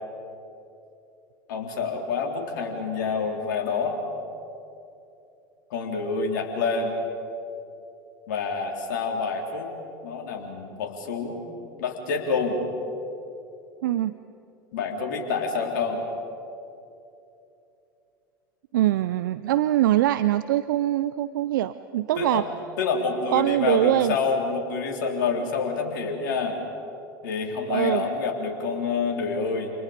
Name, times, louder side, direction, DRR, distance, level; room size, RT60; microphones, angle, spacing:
voice 1, 1.5-4.0 5.7-6.9 8.3-9.7 10.0-11.4 11.8-12.6 14.7-16.0 22.2-22.4 22.8-26.6 27.2-29.7, left 5 dB, 70° left, 1 dB, 3.8 m, -27 dB
voice 2, 13.8-14.1 18.7-22.5 23.3-24.2 27.7-28.0, right 13 dB, 70° right, 14 dB, 0.6 m, -23 dB
29.0 x 28.0 x 5.3 m, 2.8 s
hypercardioid pair, 80°, 11 cm